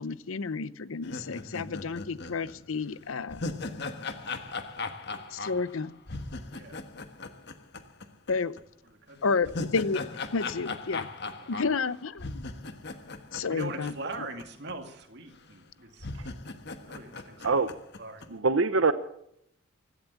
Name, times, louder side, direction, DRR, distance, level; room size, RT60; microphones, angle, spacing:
voice 1, 0.0-3.4 5.3-6.0 8.3-8.5 9.2-10.0 10.3-11.1 11.5-12.4 13.3-13.9, left 4 dB, 75° left, 17 dB, 0.7 m, -30 dB
sound 1, 1.0-8.3 8.6-8.7 9.2-14.4 14.7-14.8 15.5-15.6 16.0-18.3, left 3 dB, 55° left, 1.3 m, -38 dB
voice 2, 8.8-9.5 11.4-11.5 13.0-13.2 13.5-16.1 16.8-17.7 18.0-18.3, right 2 dB, 50° right, 5 dB, 2.3 m, -42 dB
voice 3, 18.3-18.9, right 4 dB, 70° right, 12 dB, 0.8 m, -23 dB
16.0 x 12.0 x 7.1 m, 0.73 s
head